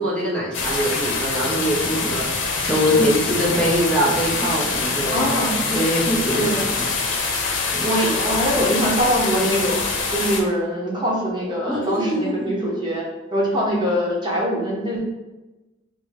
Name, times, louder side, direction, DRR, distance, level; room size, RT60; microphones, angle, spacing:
voice 1, 0.0-5.3 5.6-6.9 7.7-7.9 11.6-12.5, equal, 5° left, -7 dB, 0.8 m, -23 dB
sound 1, 0.5-10.4, left 4 dB, 75° left, 0.7 m, -24 dB
voice 2, 5.1-5.6 6.3-6.6 7.8-9.8 10.1-13.0 13.3-15.0, equal, 25° right, -4 dB, 1.0 m, -23 dB
5.1 x 2.2 x 3.5 m, 1.1 s
head